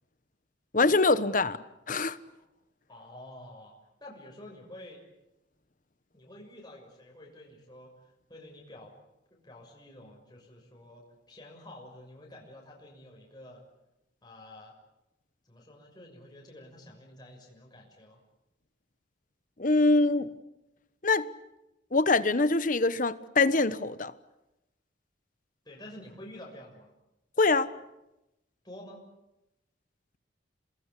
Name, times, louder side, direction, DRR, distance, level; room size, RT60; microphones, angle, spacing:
voice 1, 0.7-1.6 1.9-2.2 19.6-20.3 21.0-21.3 21.9-24.1 27.4-27.7, left 3 dB, 45° left, 1.1 m, -24 dB
voice 2, 2.9-3.7 4.0-5.0 6.1-8.9 9.3-13.6 14.2-14.8 15.4-18.2 25.6-26.9 28.6-29.0, left 1 dB, 20° left, 6.4 m, -49 dB
29.0 x 21.0 x 8.4 m
head